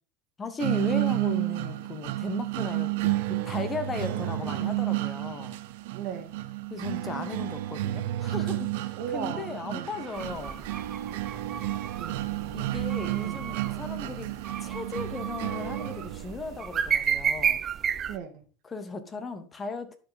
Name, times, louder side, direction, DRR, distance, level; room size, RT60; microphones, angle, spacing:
voice 1, 0.4-5.6 6.7-10.7 12.5-14.3 14.6-17.6 18.6-20.0, left 3 dB, 15° left, 1.0 m, -36 dB
sound 1, 0.6-16.6, right 17 dB, 70° right, 0.6 m, -31 dB
voice 2, 4.1-4.7 5.9-6.3 9.0-9.9 12.0-12.7 13.2-14.1 18.1-18.4, right 8 dB, 55° right, 1.6 m, -38 dB
sound 2, 10.1-18.2, right 7 dB, 25° right, 0.4 m, -33 dB
11.0 x 5.0 x 4.0 m
supercardioid pair, 155°, 0 cm